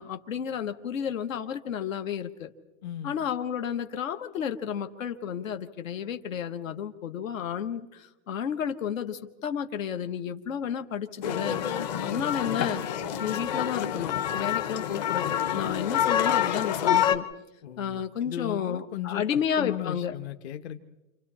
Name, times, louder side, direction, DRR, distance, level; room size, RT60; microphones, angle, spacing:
voice 1, 0.0-2.5 3.0-11.6 12.0-12.8 13.2-17.3 17.8-20.1, left 8 dB, 90° left, 7 dB, 1.6 m, -32 dB
voice 2, 2.8-3.1 17.6-20.8, left 11 dB, 55° left, 8 dB, 1.2 m, -36 dB
sound 1, 11.2-17.2, left 10 dB, 35° left, 0.8 m, -27 dB
29.5 x 27.5 x 4.3 m, 1.0 s
supercardioid pair, 175°, 39 cm